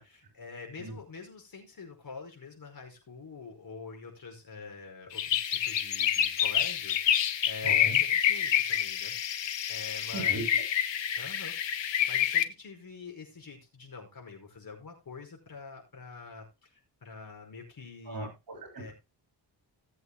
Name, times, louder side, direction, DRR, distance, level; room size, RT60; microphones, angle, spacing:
voice 1, 0.0-9.2 9.7-10.7 11.2-18.4 18.8-18.9, left 4 dB, 55° left, 3 dB, 5.3 m, -46 dB
Bird clear, 5.1-12.4, left 10 dB, 90° left, 1.1 m, -28 dB
voice 2, 7.6-8.0 10.1-10.6 18.1-18.9, right 2 dB, 50° right, 3 dB, 6.9 m, -38 dB
18.5 x 7.9 x 2.2 m, 0.25 s
wide cardioid pair, 125°, 43 cm